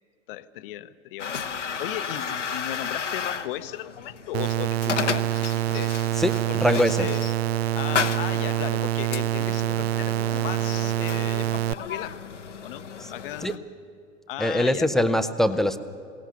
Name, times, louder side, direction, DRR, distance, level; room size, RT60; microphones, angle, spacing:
voice 1, 0.3-1.4 1.8-6.0 6.5-7.2 7.7-12.2 12.6-13.6 14.3-15.0, left 14 dB, 50° left, 13 dB, 0.8 m, -36 dB
sound 1, 1.2-13.6, left 6 dB, 80° left, 0.9 m, -34 dB
sound 2, 4.3-11.7, right 13 dB, 60° right, 0.5 m, -26 dB
voice 2, 6.2-7.1 13.4-13.5 14.4-15.8, left 1 dB, ahead, 12 dB, 0.7 m, -23 dB
22.0 x 17.5 x 7.0 m, 2.5 s
figure-of-eight pair, 90°, 35 cm